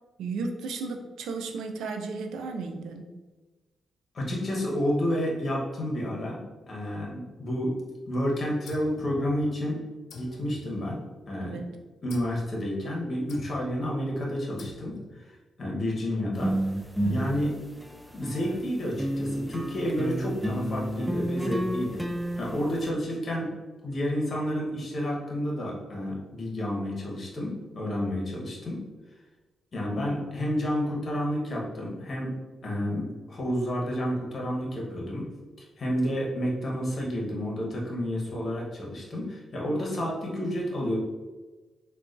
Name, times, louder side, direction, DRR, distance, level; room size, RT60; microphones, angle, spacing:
voice 1, 0.2-3.1 11.4-11.7 17.0-17.3, right 4 dB, 90° right, 5 dB, 0.3 m, -34 dB
voice 2, 4.1-6.4 6.7-7.8 8.1-9.8 10.1-11.0 11.3-11.6 12.0-16.5 17.1-17.6 18.1-22.1 22.4-23.5 23.8-28.8 29.7-32.3 32.6-35.3 35.6-41.0, equal, 50° left, -3 dB, 1.0 m, -30 dB
sound 1, 8.7-9.7 10.1-11.4 12.1-12.5 13.3-13.8 14.6-15.2, left 3 dB, 80° left, 0.3 m, -45 dB
sound 2, 16.3-18.6 19.0-22.9, right 1 dB, ahead, 0.3 m, -31 dB
3.7 x 2.3 x 2.5 m, 1.2 s
cardioid pair, 60°, 0 cm